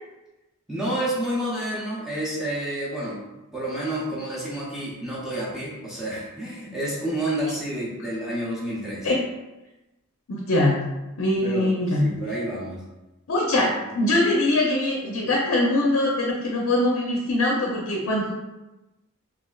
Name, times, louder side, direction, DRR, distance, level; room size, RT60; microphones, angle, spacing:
voice 1, 0.7-3.2 3.5-9.1 11.4-11.7 12.0-12.8 13.5-13.7, right 1 dB, ahead, -7 dB, 0.5 m, -29 dB
voice 2, 10.5-10.8 11.2-12.0 13.3-18.3, left 1 dB, 80° left, -2 dB, 0.5 m, -22 dB
3.2 x 2.4 x 2.2 m, 1.0 s
head